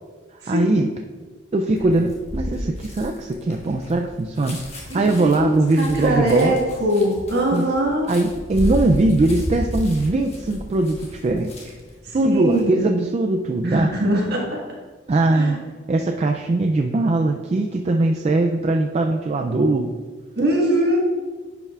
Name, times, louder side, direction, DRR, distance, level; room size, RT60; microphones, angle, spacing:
voice 1, 0.5-0.9 1.5-6.6 7.5-7.7 8.1-11.8 12.1-13.9 15.1-15.6 15.9-19.9, right 2 dB, 35° right, 3 dB, 0.3 m, -21 dB
sound 1, 1.8-11.9 12.3-12.6, equal, 35° left, 1.3 m, -32 dB
voice 2, 4.9-8.1 12.1-12.8 13.6-14.6 15.3-15.6 20.4-21.0, right 1 dB, 55° right, -2 dB, 1.6 m, -22 dB
10.0 x 5.5 x 2.4 m, 1.4 s
head